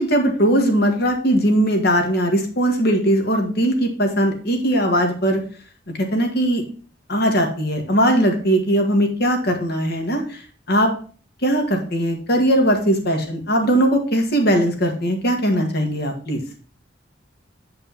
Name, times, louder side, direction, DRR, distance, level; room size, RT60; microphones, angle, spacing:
voice 1, 0.0-5.4 6.1-6.6 7.1-10.4 10.7-10.9 11.4-16.4, equal, 60° left, 4 dB, 1.9 m, -19 dB
8.1 x 5.3 x 4.2 m, 0.41 s
head